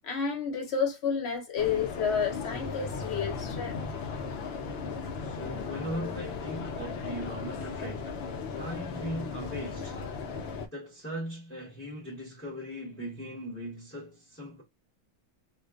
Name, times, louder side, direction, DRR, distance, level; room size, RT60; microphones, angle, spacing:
voice 1, 0.0-3.8, left 6 dB, 50° left, 0.9 m, -30 dB
sound 1, 1.6-10.7, left 5 dB, 75° left, 0.5 m, -36 dB
voice 2, 5.2-8.2 8.6-10.0 10.7-14.6, equal, 10° left, 0.7 m, -39 dB
2.5 x 2.3 x 2.3 m
omnidirectional pair, 1.6 m